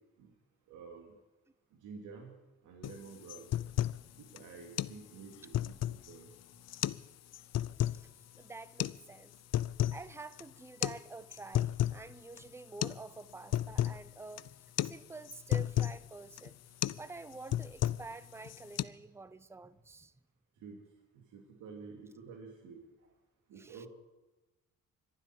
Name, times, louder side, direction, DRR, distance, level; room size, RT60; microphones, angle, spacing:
voice 1, 0.7-1.1 1.8-2.3 2.6-3.4 4.2-6.3 18.8-18.9 20.6-20.8 21.1-22.8 23.5-23.9, right 5 dB, 85° right, 2.6 m, -50 dB
sound 1, 2.8-3.0 3.3-4.0 4.4-4.5 4.8-5.0 5.3-6.1 6.7-7.1 7.3-8.0 8.8-9.0 9.3-10.0 10.3-10.4 10.8-11.0 11.3-12.0 12.4-12.5 12.8-13.0 13.3-14.0 14.4-14.5 14.8-15.0 15.3-16.0 16.4-16.5 16.8-17.0 17.3-18.1 18.4-18.8, left 12 dB, 60° left, 0.5 m, -32 dB
voice 2, 8.4-9.3 9.9-14.5 14.8-16.6 17.0-20.1 23.6-23.9, right 3 dB, 10° right, 0.6 m, -48 dB
25.5 x 12.0 x 4.6 m
cardioid pair, 90°, 30 cm